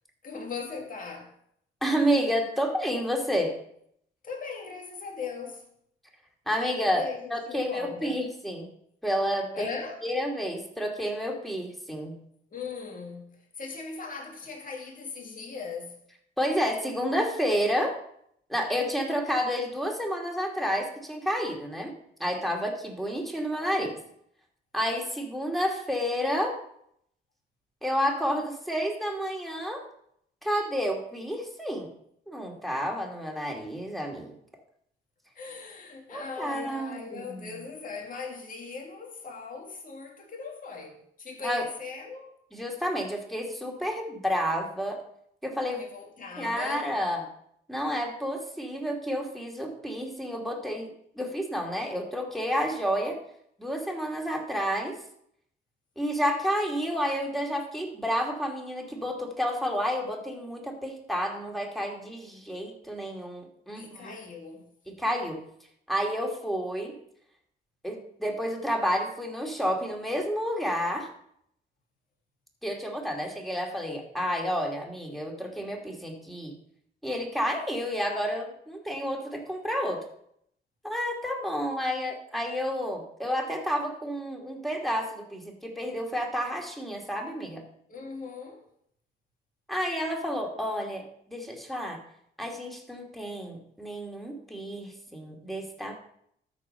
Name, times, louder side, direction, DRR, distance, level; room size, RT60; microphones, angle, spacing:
voice 1, 0.2-1.3 4.2-5.6 6.9-8.2 9.5-10.0 12.5-13.3 13.6-15.9 35.4-42.3 45.8-46.9 63.7-64.6 87.9-88.6, left 5 dB, 45° left, 2.4 m, -39 dB
voice 2, 1.8-3.5 6.5-8.7 9.0-9.7 10.0-12.1 16.4-18.0 18.5-21.9 22.2-24.0 24.7-26.6 27.8-29.8 30.4-31.9 32.3-34.3 36.1-37.6 41.4-41.6 42.5-45.0 45.4-45.8 46.4-47.3 47.7-50.9 51.1-53.2 53.6-55.0 56.0-64.1 64.9-65.4 65.9-66.9 67.8-71.1 72.6-76.5 77.0-80.0 80.8-87.6 89.7-92.0 92.4-95.9, equal, ahead, 2.7 m, -30 dB
13.0 x 4.9 x 5.7 m
cardioid pair, 90°, 20 cm